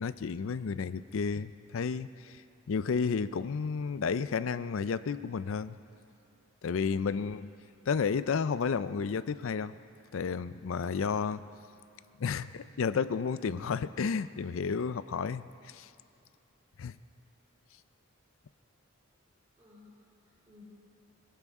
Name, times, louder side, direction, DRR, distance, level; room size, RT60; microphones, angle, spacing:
voice 1, 0.0-2.4 2.7-5.8 6.6-7.6 7.9-9.7 10.1-11.5 12.2-15.9 16.8-16.9, left 5 dB, 70° left, 15 dB, 0.4 m, -32 dB
voice 2, 19.6-20.6, left 3 dB, 20° right, -9 dB, 3.2 m, -58 dB
23.0 x 16.5 x 3.6 m, 2.5 s
head